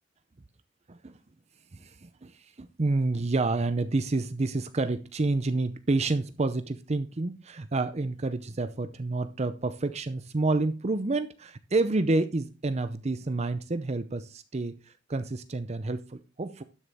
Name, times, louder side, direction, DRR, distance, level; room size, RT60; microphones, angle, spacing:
voice 1, 1.7-16.6, right 2 dB, 35° right, 0.6 m, -29 dB
12.0 x 7.1 x 3.5 m
head